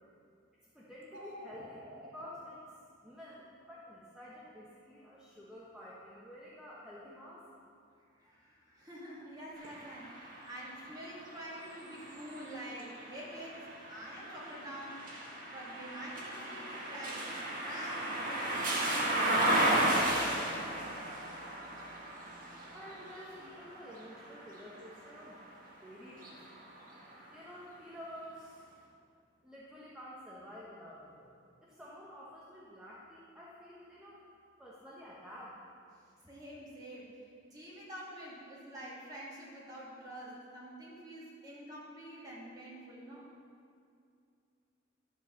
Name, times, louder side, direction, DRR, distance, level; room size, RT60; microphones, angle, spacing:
voice 1, 0.7-2.6 3.0-7.4 22.7-25.4 25.8-26.4 27.3-28.7 29.4-31.3 31.6-34.2 34.6-35.6, equal, 5° right, -7 dB, 1.1 m, -50 dB
sound 1, 1.0-2.2, equal, 75° right, 2.1 m, -49 dB
voice 2, 8.1-15.0 15.5-20.5 36.3-37.2 37.5-43.3, equal, 20° right, -7 dB, 2.6 m, -47 dB
sound 2, 9.6-25.5 26.1-27.3, right 1 dB, 45° right, 1.8 m, -35 dB
12.0 x 4.7 x 7.1 m, 2.4 s
head